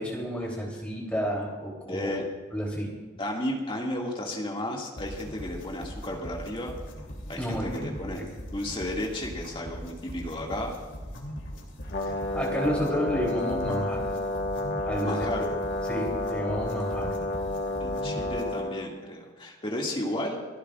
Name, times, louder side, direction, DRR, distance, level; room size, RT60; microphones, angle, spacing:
voice 1, 0.0-2.2 2.5-2.9 7.4-7.7 8.1-8.2 12.3-14.0 14.8-15.4 15.9-17.2, equal, 5° left, -3 dB, 3.3 m, -30 dB
voice 2, 1.9-2.2 3.2-6.7 7.3-8.2 8.5-10.7 12.0-12.1 15.0-15.5 17.8-20.4, left 1 dB, 25° left, -1 dB, 2.2 m, -33 dB
sound 1, 5.0-18.6, equal, 70° left, 3.0 m, -40 dB
Brass instrument, 11.9-18.9, left 2 dB, 50° left, 1.6 m, -30 dB
29.5 x 11.5 x 2.5 m, 1.4 s
head